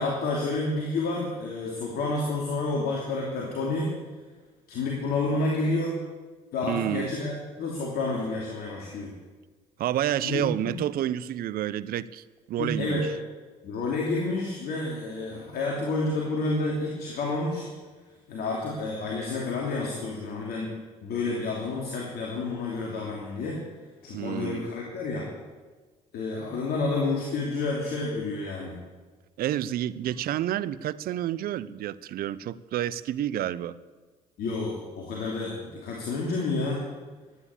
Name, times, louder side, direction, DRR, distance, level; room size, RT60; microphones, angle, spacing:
voice 1, 0.0-3.9 4.7-6.0 6.5-9.1 10.2-10.7 12.6-13.0 13.6-17.7 18.3-20.7 21.0-23.6 24.0-25.3 26.1-28.8 34.4-36.8, left 3 dB, 65° left, -2 dB, 2.9 m, -29 dB
voice 2, 6.6-7.1 9.8-13.0 24.1-24.7 29.4-33.8, right 12 dB, 60° right, 18 dB, 0.6 m, -29 dB
13.0 x 9.7 x 8.4 m, 1.3 s
hypercardioid pair, 60°, 17 cm